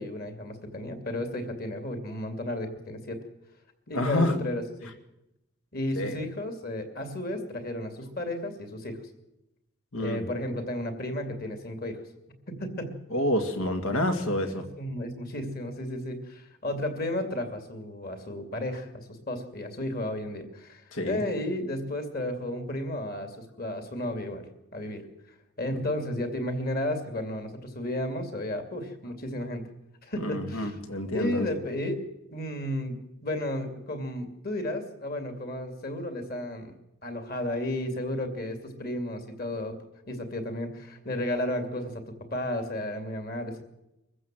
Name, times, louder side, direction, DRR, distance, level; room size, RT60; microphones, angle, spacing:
voice 1, 0.0-3.2 3.9-4.9 5.7-9.0 10.0-12.0 12.5-13.0 14.3-24.4 24.7-25.0 25.6-29.6 30.0-30.8 31.1-32.0 32.3-33.0 33.2-36.7 37.0-39.8 40.1-43.6, left 1 dB, 45° left, 7 dB, 2.7 m, -33 dB
voice 2, 3.9-4.3 5.9-6.2 9.9-10.3 13.1-14.7 20.9-21.2 30.2-31.5, left 1 dB, 75° left, 7 dB, 2.2 m, -28 dB
24.0 x 14.5 x 7.6 m, 0.89 s
head